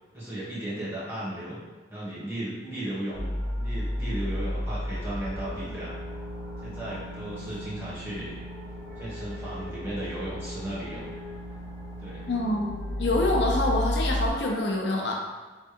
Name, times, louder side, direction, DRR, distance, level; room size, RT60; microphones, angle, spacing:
voice 1, 0.1-1.6 1.9-3.3 3.6-6.0 6.6-8.3 9.0-11.1 12.0-12.3, right 1 dB, 15° right, -9 dB, 1.3 m, -35 dB
sound 1, 3.1-14.3, equal, 15° left, 0.9 m, -33 dB
voice 2, 12.3-15.1, left 2 dB, 70° left, -1 dB, 0.7 m, -26 dB
3.3 x 3.3 x 4.5 m, 1.3 s
head